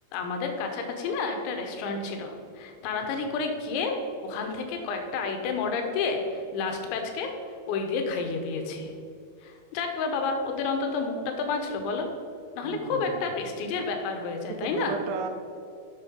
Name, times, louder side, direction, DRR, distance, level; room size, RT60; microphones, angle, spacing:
voice 1, 0.1-7.3 7.7-8.9 9.4-12.1 12.6-15.0, left 4 dB, 80° left, 4 dB, 3.2 m, -30 dB
voice 2, 12.6-13.3 14.5-15.3, right 4 dB, 85° right, 4 dB, 3.2 m, -34 dB
7.7 x 7.0 x 5.1 m, 2.4 s
omnidirectional pair, 5.4 m